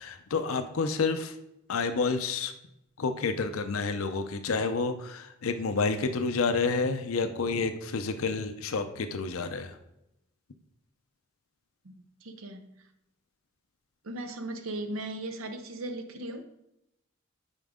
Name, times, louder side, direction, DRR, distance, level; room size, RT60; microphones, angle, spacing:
voice 1, 0.0-1.4 1.7-2.5 3.0-9.8, left 4 dB, 90° left, 8 dB, 0.6 m, -29 dB
voice 2, 11.8-12.7 14.0-16.5, right 1 dB, 85° right, 7 dB, 0.7 m, -37 dB
8.9 x 5.1 x 3.7 m, 0.85 s
head